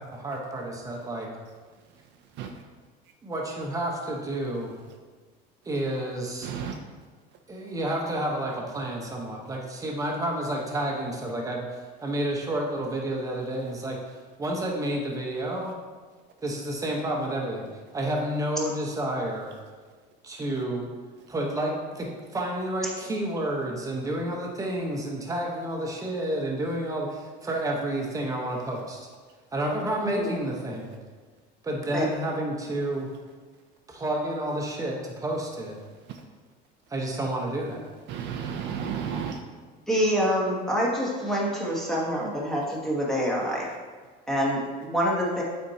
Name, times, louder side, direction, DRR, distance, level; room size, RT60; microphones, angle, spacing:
voice 1, 0.0-1.3 3.2-4.7 5.6-6.5 7.5-15.7 16.4-17.7 17.9-19.5 20.2-20.9 21.3-29.1 29.5-30.9 31.6-33.1 33.9-35.8 36.9-37.9, right 1 dB, 15° right, -1 dB, 1.0 m, -30 dB
voice 2, 1.9-2.6 6.4-6.8 36.1-36.2 38.1-39.4, right 7 dB, 60° right, 3 dB, 0.5 m, -33 dB
voice 3, 39.9-43.7 44.3-45.4, equal, ahead, -5 dB, 1.2 m, -26 dB
8.4 x 4.4 x 2.8 m, 1.4 s
cardioid pair, 145°, 21 cm